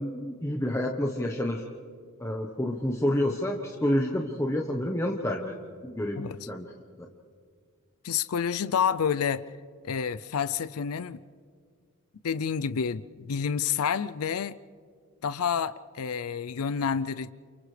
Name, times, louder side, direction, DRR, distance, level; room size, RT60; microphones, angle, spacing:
voice 1, 0.0-1.6 2.2-5.6 5.8-6.6, left 1 dB, 15° left, 1 dB, 1.1 m, -29 dB
voice 2, 8.0-9.5 9.8-11.2 12.2-14.6 15.2-17.3, left 7 dB, 75° left, 15 dB, 0.5 m, -29 dB
29.5 x 28.5 x 3.3 m, 2.1 s
head